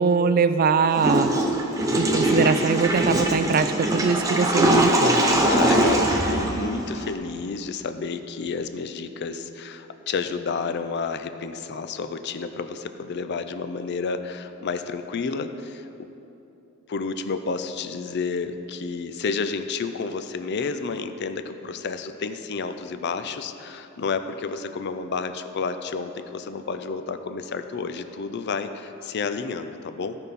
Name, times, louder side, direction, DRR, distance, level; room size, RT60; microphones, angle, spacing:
voice 1, 0.0-1.3 2.0-5.2, right 5 dB, 45° right, 12 dB, 0.3 m, -22 dB
Water / Toilet flush, 0.9-7.1, right 1 dB, 15° right, 0.8 m, -22 dB
voice 2, 5.2-16.1 16.9-30.2, left 4 dB, 55° left, 9 dB, 0.4 m, -30 dB
14.5 x 5.3 x 4.1 m, 2.9 s
head